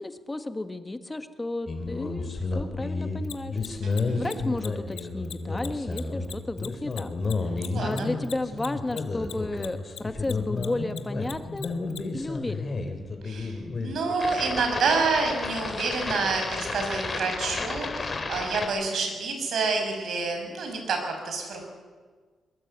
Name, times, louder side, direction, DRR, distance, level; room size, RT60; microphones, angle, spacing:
voice 1, 0.0-3.6 4.2-7.1 7.4-11.7 12.1-12.8, left 2 dB, 15° left, 8 dB, 1.5 m, -33 dB
sound 1, 1.7-18.7, left 3 dB, 35° left, 3.9 m, -32 dB
Mechanisms, 3.2-10.0 10.2-12.0, left 10 dB, 90° left, 1.4 m, -39 dB
voice 2, 3.8-4.4 7.7-8.1 13.2-21.6, right 4 dB, 70° right, 4 dB, 6.9 m, -28 dB
23.0 x 22.0 x 8.2 m, 1.5 s
cardioid pair, 105°, 0 cm